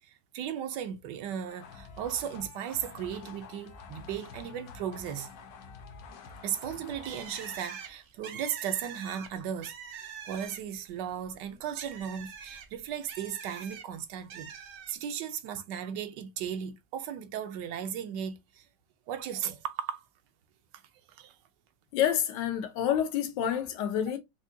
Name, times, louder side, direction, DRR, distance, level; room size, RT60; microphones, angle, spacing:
voice 1, 0.0-5.3 6.4-14.5 14.9-18.7 19.1-20.0 21.1-21.3, right 9 dB, 80° right, 1.2 m, -36 dB
sound 1, 1.5-8.0, left 5 dB, 70° left, 1.1 m, -48 dB
Bird, 7.0-10.9 11.2-13.8 14.3-14.9, right 7 dB, 60° right, 0.9 m, -44 dB
voice 2, 21.9-24.2, left 10 dB, 85° left, 1.4 m, -28 dB
4.8 x 2.2 x 2.6 m
omnidirectional pair, 1.9 m